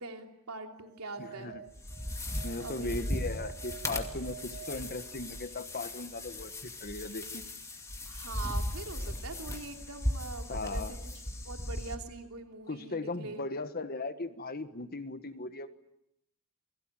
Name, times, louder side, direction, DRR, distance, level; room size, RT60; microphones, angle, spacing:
voice 1, 0.0-1.6 2.5-3.0 8.1-11.0 11.4-13.4, right 3 dB, 80° right, 4 dB, 3.1 m, -43 dB
sound 1, 0.9-5.7, right 7 dB, 45° right, 1.3 m, -49 dB
voice 2, 1.2-1.6 2.4-7.4 10.5-10.9 12.7-15.7, left 3 dB, 45° left, 10 dB, 1.5 m, -38 dB
sound 2, 1.7-12.0, left 1 dB, 15° left, 2.4 m, -37 dB
29.0 x 22.0 x 9.0 m, 0.82 s
head